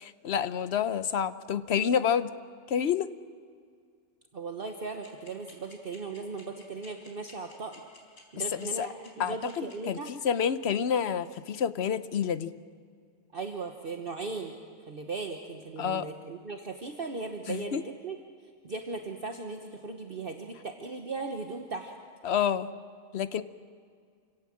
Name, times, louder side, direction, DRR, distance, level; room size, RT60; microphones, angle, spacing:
voice 1, 0.0-2.3 2.7-3.1 8.5-8.9 9.2-12.5 15.8-16.1 17.5-17.8 22.2-22.7 23.1-23.4, left 8 dB, 55° left, 13 dB, 1.0 m, -28 dB
voice 2, 4.3-7.8 8.3-10.1 13.3-14.6 14.9-18.2 18.6-21.9, right 4 dB, 45° right, 4 dB, 1.3 m, -37 dB
sound 1, 5.0-9.7, left 3 dB, 70° left, 4.6 m, -52 dB
28.5 x 17.0 x 7.5 m, 2.2 s
omnidirectional pair, 1.4 m